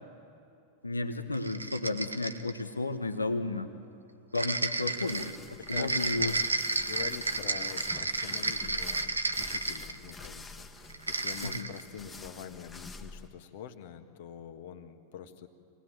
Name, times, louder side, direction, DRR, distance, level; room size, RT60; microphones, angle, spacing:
voice 1, 0.8-3.7 4.3-6.4 11.4-11.7, left 2 dB, 80° left, 8 dB, 1.2 m, -33 dB
sound 1, 1.3-2.6 4.3-10.3 10.9-11.8, right 3 dB, 80° right, 1.0 m, -32 dB
sound 2, 4.7-13.3, left 3 dB, 15° left, 1.6 m, -47 dB
voice 2, 5.6-6.5 6.8-15.5, left 8 dB, 55° left, 7 dB, 1.6 m, -45 dB
25.5 x 19.0 x 9.3 m, 2.7 s
figure-of-eight pair, 90°, 0 cm